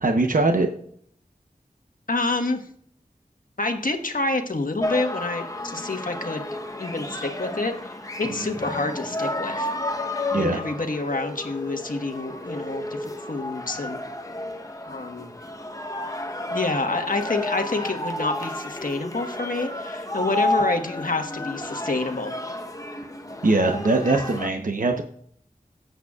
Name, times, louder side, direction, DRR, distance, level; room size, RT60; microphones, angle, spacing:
voice 1, 0.0-0.7 10.3-10.6 23.4-25.0, right 2 dB, 65° right, 4 dB, 0.9 m, -21 dB
voice 2, 2.1-2.6 3.6-6.5 6.8-9.7 10.3-14.0 14.9-15.3 16.5-22.3, left 3 dB, 70° left, 5 dB, 1.4 m, -28 dB
sound 1, 4.8-24.5, left 1 dB, 25° left, 1.0 m, -31 dB
17.0 x 8.0 x 2.4 m, 0.63 s
wide cardioid pair, 45°, 15 cm